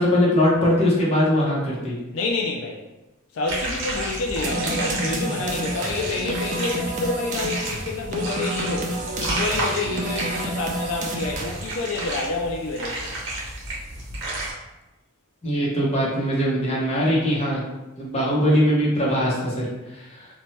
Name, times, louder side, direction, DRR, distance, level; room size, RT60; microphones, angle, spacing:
voice 1, 0.0-2.0 15.4-17.6 18.0-19.7 19.9-20.3, equal, 30° left, -5 dB, 0.7 m, -21 dB
voice 2, 2.1-2.8 3.3-13.1, left 3 dB, 80° left, 0 dB, 0.4 m, -28 dB
sound 1, 3.5-14.5, right 2 dB, 60° right, 0.9 m, -31 dB
sound 2, 4.4-11.8, right 1 dB, 35° right, 0.4 m, -30 dB
2.7 x 2.1 x 3.1 m, 1.0 s
head